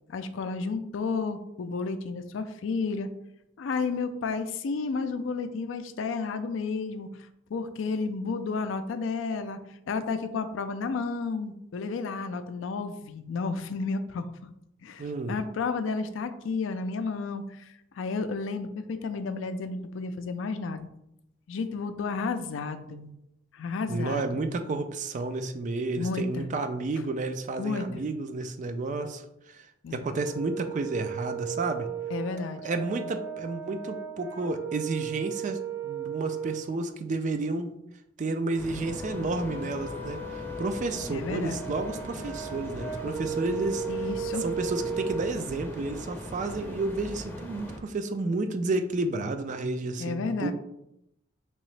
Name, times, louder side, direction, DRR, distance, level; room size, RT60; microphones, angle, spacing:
voice 1, 0.1-3.1 3.6-7.1 7.5-9.6 9.9-14.5 14.8-20.9 21.5-23.1 23.5-24.4 26.0-26.5 27.6-28.0 29.8-30.0 32.1-32.7 41.1-41.6 43.9-44.4 50.0-50.5, left 4 dB, 70° left, 10 dB, 0.4 m, -32 dB
voice 2, 15.0-15.4 23.9-29.7 29.9-31.9 32.6-37.7 38.2-43.8 44.4-50.5, right 3 dB, 40° right, 8 dB, 0.3 m, -31 dB
Brass instrument, 30.2-36.7 38.8-45.3, right 6 dB, 65° right, 1.2 m, -36 dB
sound 1, 38.6-47.8, equal, 10° left, 0.6 m, -40 dB
3.7 x 3.0 x 3.2 m, 0.82 s
head